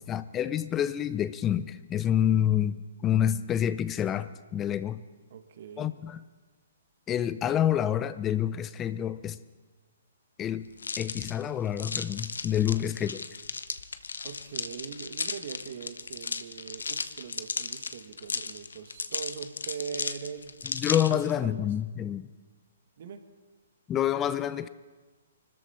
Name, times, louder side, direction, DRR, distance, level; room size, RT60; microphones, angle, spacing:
voice 1, 0.1-5.0 5.8-6.2 7.1-9.4 10.4-13.2 20.7-22.3 23.9-24.7, left 10 dB, 20° left, 15 dB, 0.6 m, -28 dB
voice 2, 5.3-6.0 12.7-12.8 14.2-20.6 21.1-21.7 23.0-23.2, right 7 dB, 55° right, 8 dB, 1.6 m, -41 dB
sound 1, 10.8-21.3, left 4 dB, 80° left, 0.9 m, -35 dB
25.0 x 13.5 x 4.3 m, 1.3 s
hypercardioid pair, 130°, 0 cm